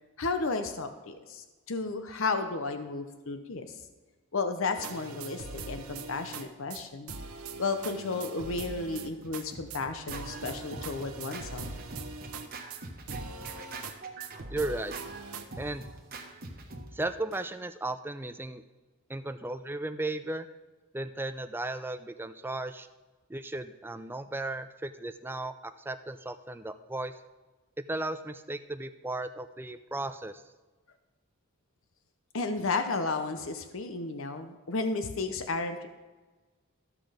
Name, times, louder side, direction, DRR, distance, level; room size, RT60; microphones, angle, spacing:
voice 1, 0.2-3.6 4.3-7.1 7.6-11.7 32.3-35.9, left 3 dB, 65° left, 8 dB, 0.8 m, -33 dB
sound 1, 4.7-6.4 6.7-6.8 7.1-9.4 9.7-9.8 10.1-12.8 13.1-13.9 14.2-15.4, right 4 dB, 85° right, 1.0 m, -41 dB
Scratching (performance technique), 8.9-17.4, right 2 dB, 45° right, 1.3 m, -44 dB
voice 2, 14.5-14.9 15.6-15.9 16.9-18.6 19.1-20.5 20.9-22.9 23.3-27.2 27.9-30.4, right 2 dB, 10° right, 10 dB, 0.4 m, -35 dB
13.5 x 6.1 x 5.0 m, 1.3 s
head